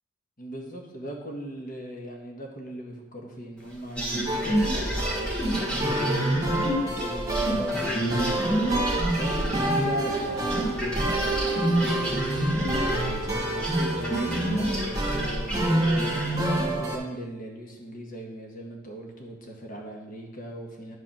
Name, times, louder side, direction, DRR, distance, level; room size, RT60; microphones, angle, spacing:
voice 1, 0.4-6.3 6.8-7.8 8.5-15.9 16.5-21.0, right 1 dB, 40° left, 0 dB, 1.5 m, -39 dB
sound 1, 4.0-10.2 10.5-16.7, right 1 dB, 5° left, 1.9 m, -27 dB
sound 2, 4.3-17.0, right 1 dB, 15° right, 1.8 m, -30 dB
sound 3, 9.4-14.8, right 3 dB, 70° right, 0.6 m, -41 dB
9.8 x 4.8 x 6.0 m, 1.1 s
head